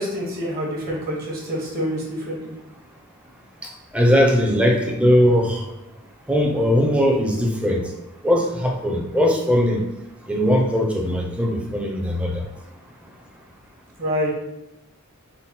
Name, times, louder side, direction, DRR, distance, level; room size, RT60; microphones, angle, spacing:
voice 1, 0.0-2.5 14.0-14.4, equal, 45° right, -3 dB, 0.9 m, -26 dB
voice 2, 3.9-5.6 6.3-7.8 8.2-9.8 10.3-12.4, equal, 5° right, 0 dB, 0.5 m, -19 dB
4.0 x 2.1 x 3.6 m, 0.91 s
head